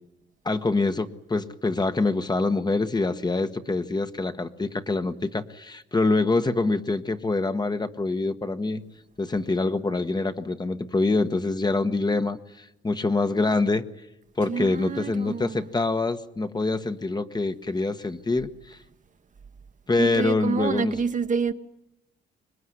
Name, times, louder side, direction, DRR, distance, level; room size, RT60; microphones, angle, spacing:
voice 1, 0.4-8.8 9.2-13.9 14.4-18.8 19.9-20.9, left 3 dB, 20° left, 1.3 m, -25 dB
voice 2, 14.4-15.7 20.0-21.5, right 5 dB, 40° right, 1.3 m, -28 dB
25.5 x 20.5 x 9.7 m
cardioid pair, 90°, 20 cm